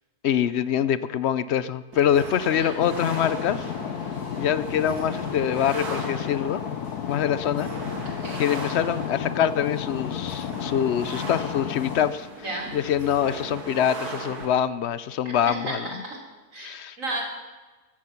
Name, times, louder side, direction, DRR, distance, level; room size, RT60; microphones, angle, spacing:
voice 1, 0.2-3.7 4.4-6.6 7.1-7.7 8.4-12.3 12.7-15.9 16.6-17.0, left 9 dB, 65° left, 16 dB, 0.7 m, -25 dB
sound 1, 1.9-14.5, right 2 dB, 80° right, 3.0 m, -38 dB
sound 2, 2.8-12.1, left 9 dB, 85° left, 1.4 m, -32 dB
voice 2, 15.3-16.2 16.5-17.2, right 2 dB, 55° right, 0 dB, 3.6 m, -33 dB
15.0 x 13.5 x 5.8 m, 1.3 s
omnidirectional pair, 1.6 m